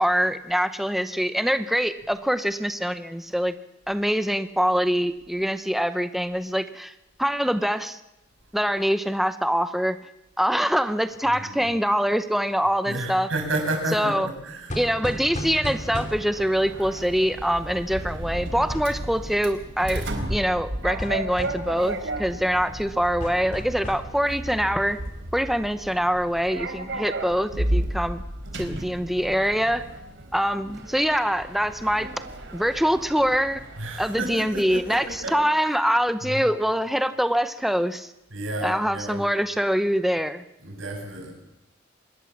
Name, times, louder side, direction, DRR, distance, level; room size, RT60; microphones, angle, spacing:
voice 1, 0.0-3.5 3.9-6.9 7.2-8.0 8.5-10.0 10.4-13.3 13.9-14.3 14.8-25.0 25.3-28.2 28.5-29.8 30.3-32.1 32.5-33.6 34.0-38.1 38.6-40.4, equal, ahead, 10 dB, 0.8 m, -24 dB
voice 2, 12.9-14.7 33.8-35.4 36.2-36.5 38.3-39.2 40.6-41.3, right 1 dB, 85° right, 2 dB, 7.6 m, -31 dB
sound 1, 14.7-16.5 18.7-19.0 21.0-21.7 23.2-24.2, equal, 40° left, 3.1 m, -34 dB
Sliding door, 15.7-35.3, right 1 dB, 65° right, 3.9 m, -34 dB
25.5 x 20.5 x 7.3 m, 0.90 s
head